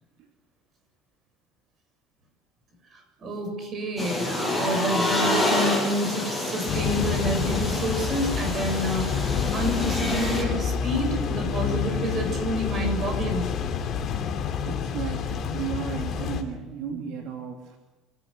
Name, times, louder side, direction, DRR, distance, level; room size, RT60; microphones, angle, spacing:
voice 1, 2.9-13.5, right 1 dB, 30° right, 4 dB, 7.1 m, -29 dB
sound 1, 4.0-10.4, left 2 dB, ahead, 6.5 m, -28 dB
sound 2, 6.7-16.4, left 7 dB, 35° left, 3.0 m, -28 dB
voice 2, 14.6-17.8, right 7 dB, 65° right, 2 dB, 3.1 m, -34 dB
27.0 x 16.5 x 8.2 m, 1.2 s
cardioid pair, 175°, 0 cm